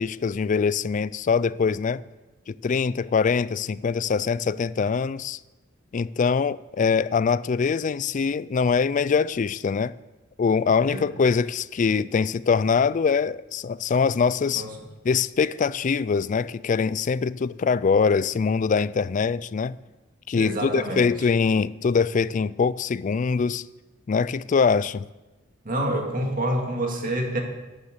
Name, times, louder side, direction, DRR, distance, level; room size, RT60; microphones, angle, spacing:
voice 1, 0.0-2.0 2.5-5.4 5.9-9.9 10.4-14.7 15.0-19.8 20.3-23.7 24.1-25.1, left 5 dB, 40° left, 0.3 m, -23 dB
voice 2, 20.3-21.1 25.6-27.4, right 1 dB, 45° right, 2.2 m, -27 dB
11.5 x 9.9 x 6.7 m
head